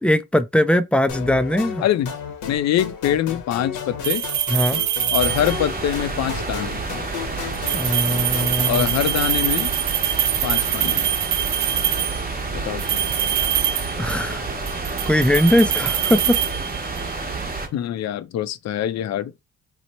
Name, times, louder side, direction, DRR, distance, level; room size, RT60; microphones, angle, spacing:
voice 1, 0.0-1.8 4.5-4.8 7.7-8.9 14.0-14.4 15.1-16.4, left 1 dB, 5° left, 0.3 m, -20 dB
sound 1, 1.1-8.8, left 8 dB, 80° left, 0.9 m, -34 dB
voice 2, 1.8-2.1 2.4-4.2 5.1-6.8 8.7-9.7 10.4-11.1 12.5-13.0 17.7-19.3, left 11 dB, 60° left, 0.5 m, -24 dB
sound 2, 4.0-5.8 7.5-12.3 12.8-14.4 14.7-17.1, right 10 dB, 70° right, 0.5 m, -24 dB
sound 3, 5.2-17.7, right 3 dB, 30° right, 1.0 m, -29 dB
3.0 x 2.0 x 4.1 m
cardioid pair, 90°, 30 cm